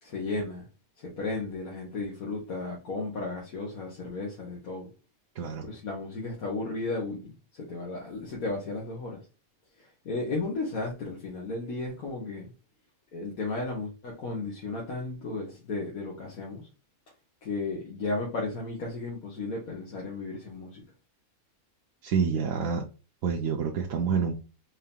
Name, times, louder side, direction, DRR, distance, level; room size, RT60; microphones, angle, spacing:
voice 1, 0.0-0.7 1.0-4.9 5.6-9.2 10.0-12.5 13.1-16.7 17.4-20.8, left 3 dB, 90° left, 1.6 m, -34 dB
voice 2, 22.0-22.8 23.2-24.3, right 6 dB, 75° right, 1.1 m, -27 dB
4.7 x 2.8 x 3.5 m
omnidirectional pair, 1.5 m